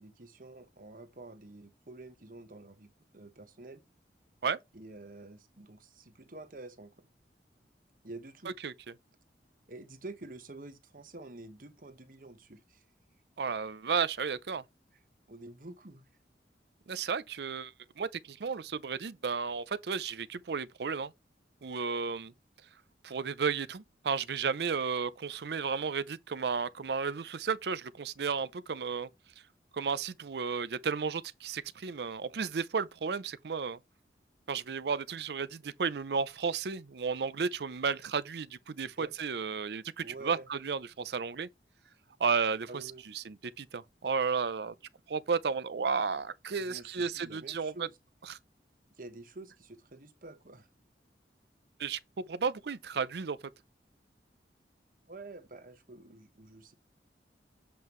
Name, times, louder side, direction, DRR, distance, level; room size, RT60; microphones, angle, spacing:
voice 1, 0.0-2.9 3.1-3.8 4.7-7.1 8.0-8.6 9.7-12.8 15.3-16.0 38.8-39.1 40.0-40.5 42.7-43.0 46.6-48.0 49.0-50.7 55.1-56.7, right 2 dB, 50° right, 1.2 m, -48 dB
voice 2, 13.4-14.6 16.9-21.1 21.6-22.3 23.0-29.1 29.7-33.8 34.5-41.5 42.2-42.8 43.1-44.7 45.1-47.9 48.3-48.4 51.8-53.4, right 5 dB, 70° right, 0.5 m, -33 dB
7.7 x 5.3 x 3.1 m
head